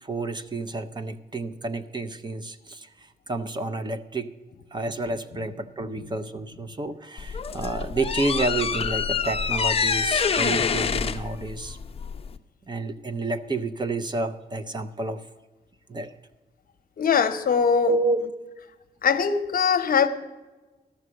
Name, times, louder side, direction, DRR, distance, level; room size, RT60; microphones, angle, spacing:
voice 1, 0.0-2.9 3.3-4.3 4.7-11.8 12.7-15.2 15.9-16.1 17.8-18.2, right 3 dB, 25° right, 0.6 m, -29 dB
sound 1, 7.2-12.4, left 6 dB, 35° left, 0.6 m, -26 dB
voice 2, 17.0-17.9 19.0-20.1, left 6 dB, 60° left, 0.9 m, -21 dB
13.0 x 6.3 x 7.6 m
wide cardioid pair, 155°, 17 cm